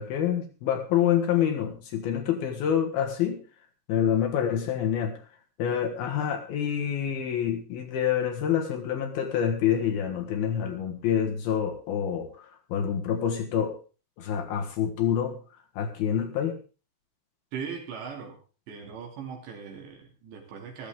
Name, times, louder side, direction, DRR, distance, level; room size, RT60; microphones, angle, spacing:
voice 1, 0.0-3.4 3.9-5.2 5.6-13.8 14.2-15.4 15.8-16.6, left 9 dB, 65° left, 3 dB, 3.1 m, -27 dB
voice 2, 17.5-18.4 18.7-20.9, right 6 dB, 75° right, 1 dB, 5.0 m, -39 dB
14.0 x 13.5 x 3.7 m, 0.34 s
omnidirectional pair, 5.1 m